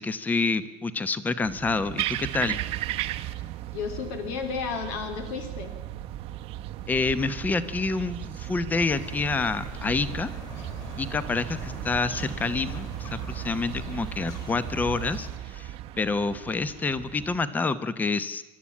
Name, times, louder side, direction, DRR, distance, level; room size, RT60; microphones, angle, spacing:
voice 1, 0.0-2.6 6.9-10.3 11.0-18.4, left 4 dB, 15° left, 14 dB, 0.9 m, -28 dB
sound 1, 1.4-17.5, right 14 dB, 50° right, 0.9 m, -36 dB
voice 2, 3.7-5.7, left 6 dB, 75° left, 6 dB, 3.4 m, -32 dB
sound 2, 8.7-15.3, left 3 dB, 30° left, 4.1 m, -43 dB
27.0 x 13.0 x 8.6 m, 1.1 s
cardioid pair, 165°, 13 cm